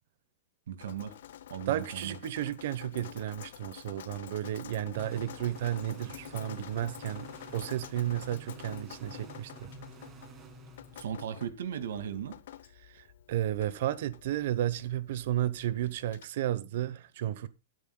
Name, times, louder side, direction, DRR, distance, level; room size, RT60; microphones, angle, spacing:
voice 1, 0.7-1.1 1.5-2.2 11.0-12.4, right 9 dB, 80° right, 2.3 m, -37 dB
Drip, 0.8-16.2, left 11 dB, 65° left, 0.9 m, -49 dB
voice 2, 1.7-9.7 12.8-17.5, right 12 dB, 50° right, 1.1 m, -33 dB
sound 1, 5.0-11.5, right 3 dB, 15° right, 2.0 m, -49 dB
21.0 x 9.2 x 2.3 m
supercardioid pair, 170°, 0 cm